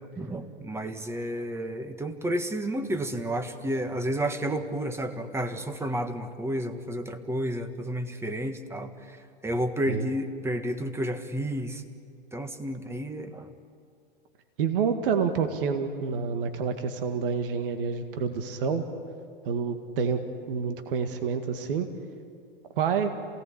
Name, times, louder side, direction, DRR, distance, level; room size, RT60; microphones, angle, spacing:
voice 1, 0.2-11.8 12.3-13.5, right 1 dB, 10° right, 8 dB, 1.6 m, -31 dB
voice 2, 14.6-18.9 19.5-20.2 20.5-21.9 22.8-23.1, right 6 dB, 65° right, 7 dB, 2.0 m, -28 dB
27.5 x 18.0 x 8.7 m, 2.3 s
hypercardioid pair, 115°, 29 cm